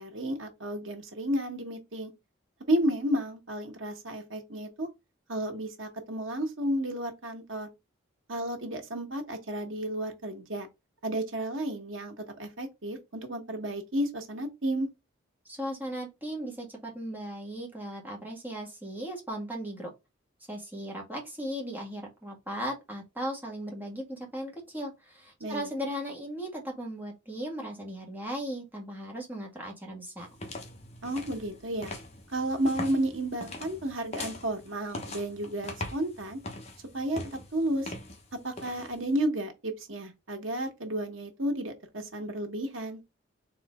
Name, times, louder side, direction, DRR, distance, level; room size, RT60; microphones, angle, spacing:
voice 1, 0.0-2.1 2.7-4.9 5.3-7.7 8.3-10.7 11.0-14.9 25.4-25.7 31.0-31.9 32.3-36.4 36.9-37.9 38.3-43.0, right 1 dB, 90° right, 1.5 m, -32 dB
voice 2, 15.4-19.9 20.5-30.3, equal, 10° right, 1.7 m, -37 dB
sound 1, 30.2-39.2, left 2 dB, 35° left, 1.1 m, -42 dB
4.3 x 3.2 x 3.6 m
head